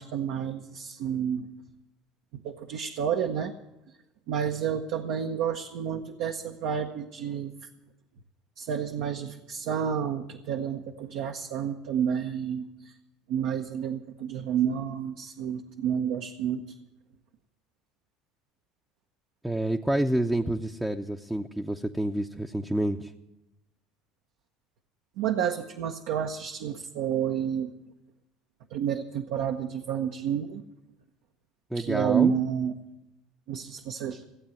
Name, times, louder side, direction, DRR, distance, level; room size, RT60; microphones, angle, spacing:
voice 1, 0.0-1.5 2.4-3.5 4.3-7.5 8.6-12.9 13.3-16.6 25.2-27.7 28.7-30.6 31.7-32.7 33.5-34.2, right 8 dB, 70° right, 3 dB, 0.9 m, -30 dB
voice 2, 19.4-23.1 31.7-32.3, right 1 dB, 5° right, 2 dB, 0.7 m, -28 dB
16.0 x 8.4 x 9.2 m, 0.94 s
hypercardioid pair, 75°, 0 cm